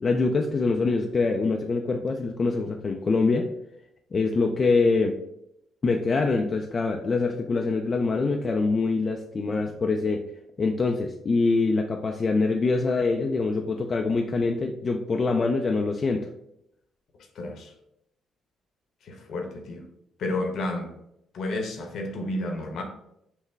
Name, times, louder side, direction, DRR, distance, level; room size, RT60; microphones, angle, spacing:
voice 1, 0.0-3.5 4.1-5.2 5.8-10.2 10.6-16.3, left 3 dB, 40° left, 0.4 m, -24 dB
voice 2, 17.3-17.7 19.0-19.8 20.2-20.9 21.3-22.8, left 2 dB, 70° left, 0.9 m, -31 dB
5.6 x 2.1 x 3.3 m
cardioid pair, 90°, 0 cm